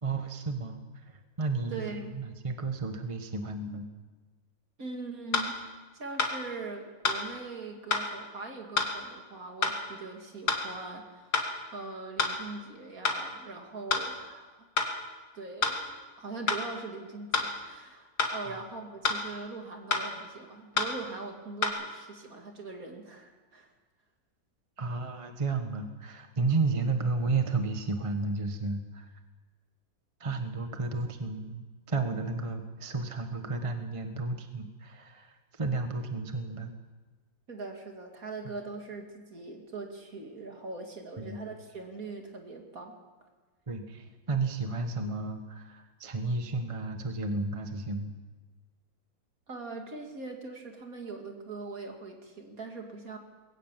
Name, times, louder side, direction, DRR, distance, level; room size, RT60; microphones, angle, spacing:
voice 1, 0.0-0.8 1.1-3.9 18.4-18.6 24.8-29.1 30.2-36.7 41.2-41.4 43.7-48.1, right 3 dB, 20° right, 5 dB, 1.2 m, -32 dB
voice 2, 1.7-2.2 4.8-5.7 5.9-14.7 15.3-23.7 37.5-43.0 49.5-53.2, right 3 dB, 50° right, 3 dB, 2.9 m, -41 dB
sound 1, 5.3-5.5 6.2-6.4 7.0-7.2 7.9-8.1 8.8-8.9 9.6-9.8 10.5-10.6 11.3-11.5 12.2-12.4 13.0-13.2 13.9-14.1 14.8-14.9 15.6-15.8 16.5-16.6 17.3-17.5 18.2-18.3 19.0-19.2 19.9-20.1 20.8-20.9 21.6-21.7, left 4 dB, 55° left, 2.7 m, -27 dB
21.5 x 17.5 x 7.5 m, 1.3 s
omnidirectional pair, 2.0 m